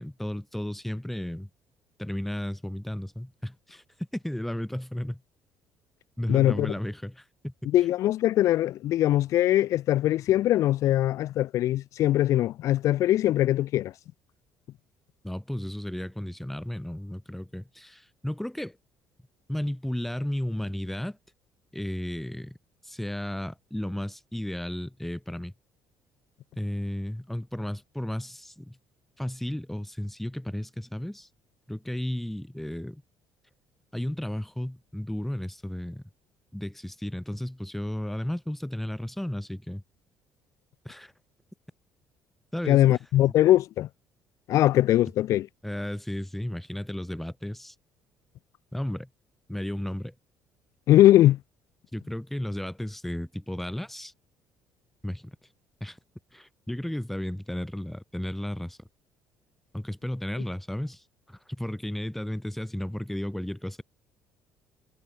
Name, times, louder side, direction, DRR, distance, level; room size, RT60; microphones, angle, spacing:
voice 1, 0.0-1.5 2.0-3.8 4.1-5.2 6.2-7.5 15.2-18.8 19.5-21.2 21.7-22.6 22.8-25.5 26.6-28.8 29.2-31.3 31.7-33.0 33.9-36.0 36.5-39.8 40.8-41.1 42.5-43.0 45.6-47.7 48.7-49.1 49.5-50.1 51.9-54.1 55.0-55.3 55.8-56.0 56.3-58.8 59.7-63.8, left 1 dB, 5° left, 5.5 m, -33 dB
voice 2, 6.3-6.7 7.7-13.9 42.7-43.9 44.5-45.5 50.9-51.4, left 14 dB, 65° left, 1.1 m, -21 dB
cardioid pair, 115°, 6 cm